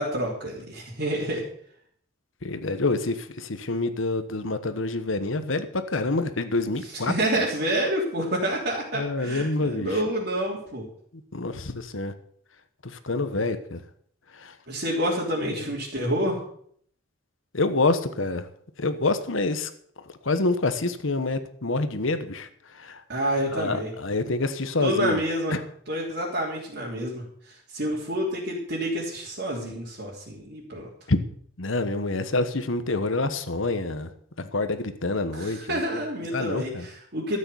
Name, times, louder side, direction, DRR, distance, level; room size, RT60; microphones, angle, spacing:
voice 1, 0.0-1.4 6.8-10.9 14.7-16.4 23.1-23.9 24.8-25.6 25.9-27.2 27.7-30.9 35.3-37.4, right 1 dB, 55° right, -6 dB, 3.3 m, -28 dB
voice 2, 2.4-7.1 8.9-9.9 11.3-12.1 13.0-13.8 14.4-14.5 17.5-18.4 18.8-19.7 20.2-22.5 22.8-23.0 23.5-25.2 25.5-25.6 31.1-31.2 31.6-34.1 34.4-35.8 36.3-36.9, left 2 dB, 70° left, 11 dB, 1.2 m, -27 dB
13.0 x 8.9 x 7.0 m, 0.62 s
head